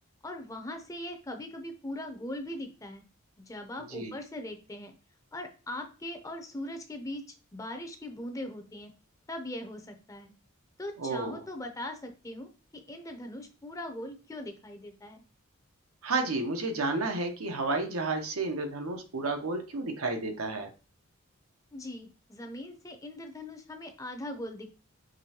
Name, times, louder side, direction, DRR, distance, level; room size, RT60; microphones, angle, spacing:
voice 1, 0.2-3.0 3.5-4.9 5.3-7.2 7.5-8.9 9.3-10.3 10.8-12.5 12.9-15.2 21.7-24.7, left 1 dB, 15° left, 6 dB, 0.5 m, -40 dB
voice 2, 11.0-11.4 16.0-20.7, right 3 dB, 90° right, 5 dB, 0.9 m, -31 dB
5.3 x 3.1 x 2.8 m, 0.35 s
head